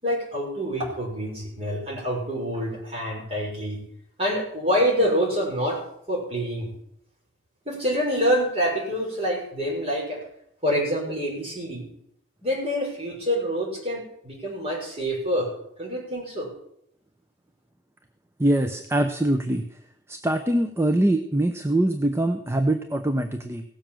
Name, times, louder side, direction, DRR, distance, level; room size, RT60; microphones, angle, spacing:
voice 1, 0.0-3.8 4.2-5.8 6.1-6.7 7.6-10.2 10.6-11.9 12.4-15.5 15.8-16.5, equal, 35° right, -3 dB, 6.0 m, -26 dB
voice 2, 18.4-19.7 20.1-23.6, right 1 dB, 15° right, 7 dB, 0.7 m, -23 dB
17.0 x 7.2 x 7.5 m, 0.72 s
head